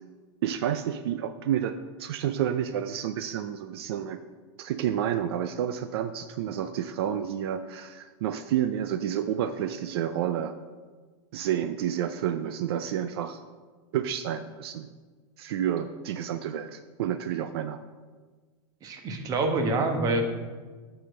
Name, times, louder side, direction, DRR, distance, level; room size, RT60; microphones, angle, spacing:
voice 1, 0.4-4.2 4.6-10.6 11.3-13.4 13.9-14.9 15.4-17.8, right 10 dB, 70° right, 10 dB, 0.5 m, -30 dB
voice 2, 18.8-20.2, right 2 dB, 25° right, 5 dB, 1.2 m, -26 dB
8.9 x 4.9 x 6.4 m, 1.4 s
supercardioid pair, 155°, 14 cm